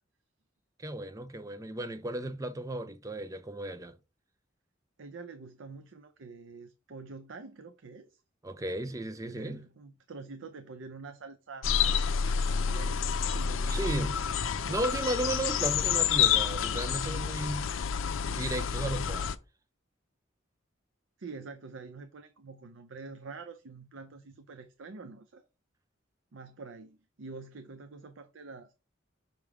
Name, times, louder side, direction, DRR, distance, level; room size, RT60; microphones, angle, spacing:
voice 1, 0.8-4.0 8.4-9.6 13.7-14.2 14.7-17.7 18.3-19.3, right 1 dB, 15° right, 0.5 m, -35 dB
voice 2, 5.0-8.2 9.2-12.0 12.3-14.1 21.2-25.4 26.3-28.7, right 4 dB, 75° right, 0.5 m, -46 dB
sound 1, 11.6-19.4, left 7 dB, 80° left, 0.5 m, -29 dB
5.9 x 3.4 x 4.8 m
head